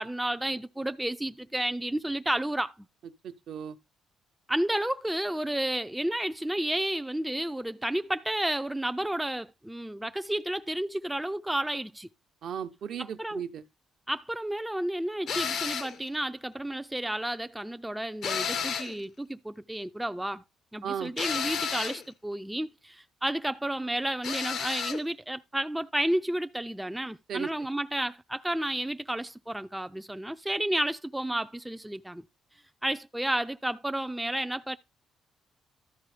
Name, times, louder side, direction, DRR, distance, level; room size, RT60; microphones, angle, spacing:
voice 1, 0.0-2.9 4.5-12.1 13.0-13.4 14.1-20.4 20.7-32.2 32.8-34.8, right 1 dB, 5° right, 0.4 m, -31 dB
voice 2, 3.2-3.8 12.4-13.6 20.8-21.1 27.3-27.5, right 8 dB, 70° right, 0.9 m, -35 dB
sound 1, 15.3-16.0 18.2-19.0 21.2-22.0 24.2-25.0, left 7 dB, 70° left, 0.8 m, -32 dB
12.5 x 4.3 x 4.9 m
cardioid pair, 90°, 0 cm